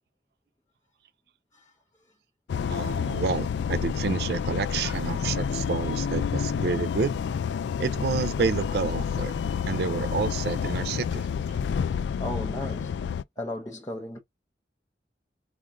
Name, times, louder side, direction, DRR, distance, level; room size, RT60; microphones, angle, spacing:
sound 1, 2.5-13.2, left 7 dB, 80° left, 0.3 m, -29 dB
voice 1, 2.7-7.4 7.8-9.4 9.7-11.3, right 5 dB, 60° right, 0.3 m, -29 dB
voice 2, 12.2-13.0 13.4-14.2, left 1 dB, 20° left, 0.6 m, -35 dB
5.1 x 2.4 x 3.6 m
head